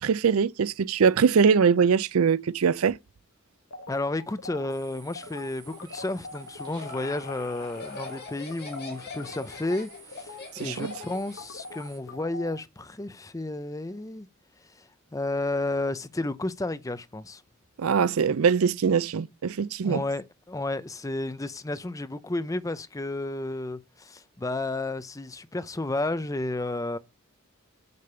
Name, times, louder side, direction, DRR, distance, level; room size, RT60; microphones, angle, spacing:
voice 1, 0.0-3.0 10.6-10.9 17.8-20.0, right 6 dB, 75° right, 0.5 m, -22 dB
sound 1, 3.7-6.9 7.2-7.5 7.8-12.6, left 4 dB, 65° left, 1.2 m, -42 dB
voice 2, 3.9-14.3 14.7-17.4 19.8-27.0, left 2 dB, 15° left, 0.6 m, -32 dB
sound 2, 4.7-12.0, right 4 dB, 20° right, 2.7 m, -52 dB
Laughter, 6.3-11.5, left 4 dB, 50° left, 2.3 m, -43 dB
6.7 x 5.1 x 6.9 m
head